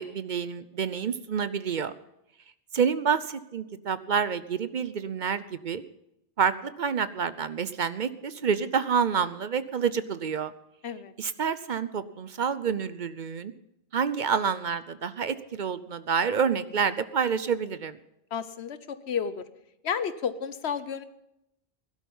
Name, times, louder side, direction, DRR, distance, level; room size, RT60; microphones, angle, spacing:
voice 1, 0.0-1.9 2.7-5.8 6.4-10.5 11.2-13.5 13.9-18.0, right 6 dB, 50° right, 14 dB, 0.7 m, -28 dB
voice 2, 18.3-19.4 19.8-21.0, left 7 dB, 80° left, 13 dB, 1.2 m, -31 dB
17.0 x 12.0 x 5.5 m, 0.83 s
omnidirectional pair, 1.1 m